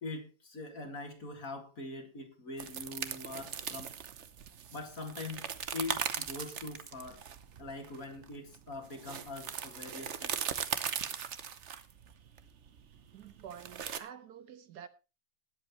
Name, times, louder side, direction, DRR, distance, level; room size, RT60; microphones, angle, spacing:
voice 1, 0.0-4.0 4.7-5.4 5.7-7.2 7.6-10.4, left 2 dB, 50° left, 2.5 m, -43 dB
sound 1, 2.6-14.0, right 8 dB, 50° right, 0.9 m, -39 dB
voice 2, 13.1-14.9, right 8 dB, 70° right, 1.3 m, -48 dB
19.0 x 8.0 x 3.1 m
omnidirectional pair, 1.9 m